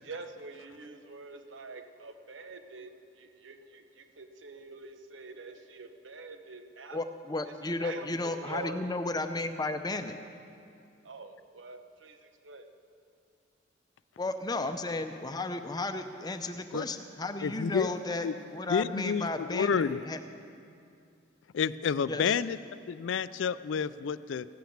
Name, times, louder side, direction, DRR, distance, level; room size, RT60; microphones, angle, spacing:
voice 1, 0.0-7.0 7.6-8.9 11.0-12.7, right 3 dB, 75° right, 6 dB, 1.1 m, -46 dB
voice 2, 6.9-10.2 14.2-20.2 22.1-22.4, left 2 dB, 20° left, 8 dB, 0.6 m, -34 dB
voice 3, 17.4-17.9 18.2-18.3 18.7-20.0 21.5-22.6 22.9-24.5, left 6 dB, 70° left, 16 dB, 0.4 m, -29 dB
16.0 x 9.1 x 7.3 m, 2.5 s
head